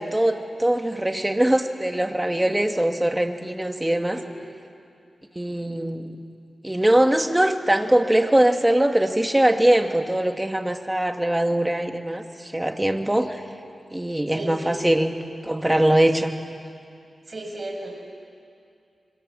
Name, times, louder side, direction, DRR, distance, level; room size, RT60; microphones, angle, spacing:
voice 1, 0.0-4.2 5.4-6.2 6.6-13.4 13.9-15.2 15.4-16.4, right 1 dB, 10° right, 5 dB, 1.8 m, -22 dB
voice 2, 14.3-14.8 17.3-17.9, right 1 dB, 40° right, 1 dB, 6.3 m, -35 dB
26.0 x 23.5 x 7.5 m, 2.4 s
cardioid pair, 70°, 0 cm